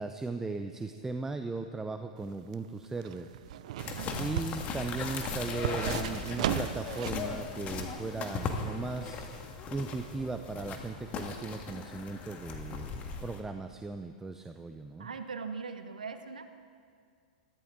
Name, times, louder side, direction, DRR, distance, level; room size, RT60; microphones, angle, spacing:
voice 1, 0.0-3.3 4.2-9.3 9.7-15.1, right 3 dB, 10° right, 7 dB, 0.6 m, -37 dB
sound 1, 2.2-7.3 7.6-7.7, right 11 dB, 60° right, 0.6 m, -36 dB
sound 2, 3.8-13.4, left 4 dB, 35° left, 1.8 m, -38 dB
voice 2, 4.0-4.3 15.0-16.6, right 5 dB, 80° right, 8 dB, 1.2 m, -40 dB
21.5 x 15.0 x 3.7 m, 2.2 s
hypercardioid pair, 105°, 4 cm